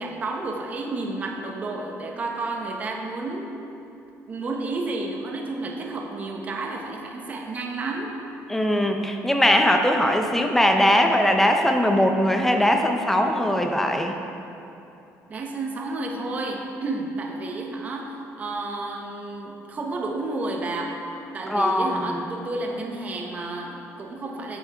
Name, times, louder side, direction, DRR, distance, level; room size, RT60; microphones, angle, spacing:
voice 1, 0.0-3.5 4.3-8.1 15.3-21.0 21.3-24.6, right 2 dB, 25° right, 1 dB, 0.8 m, -31 dB
voice 2, 8.5-14.2 21.5-22.2, left 1 dB, 5° left, 4 dB, 0.5 m, -20 dB
8.4 x 8.2 x 3.3 m, 2.8 s
cardioid pair, 165°, 6 cm